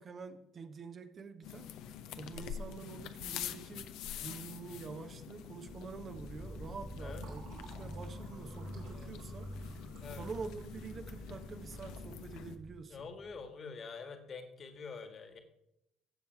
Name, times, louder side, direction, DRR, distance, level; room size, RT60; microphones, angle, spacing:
voice 1, 0.0-1.7 2.2-3.9 4.2-9.5 10.1-13.1, right 5 dB, 40° right, 8 dB, 1.0 m, -47 dB
sound 1, 1.4-12.6, left 9 dB, 60° left, 0.7 m, -46 dB
sound 2, 5.7-13.5, right 1 dB, ahead, 0.5 m, -48 dB
Fill (with liquid), 6.5-12.9, right 4 dB, 70° right, 2.8 m, -60 dB
voice 2, 12.9-15.4, left 5 dB, 40° left, 7 dB, 1.7 m, -46 dB
15.5 x 7.1 x 4.6 m, 0.83 s
figure-of-eight pair, 55°, 0 cm